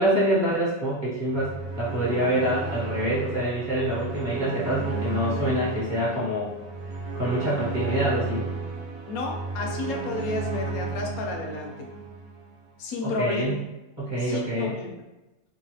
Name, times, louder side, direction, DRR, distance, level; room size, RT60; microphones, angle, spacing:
voice 1, 0.0-6.5 7.1-8.5 13.0-13.6 14.0-14.7, right 1 dB, 35° right, -9 dB, 0.9 m, -26 dB
sound 1, 1.3-12.6, right 4 dB, 85° right, 1.1 m, -33 dB
voice 2, 9.1-11.9 12.8-13.5 14.2-14.9, left 3 dB, 80° left, 1 dB, 1.1 m, -31 dB
3.1 x 2.2 x 2.8 m, 1.0 s
omnidirectional pair, 1.5 m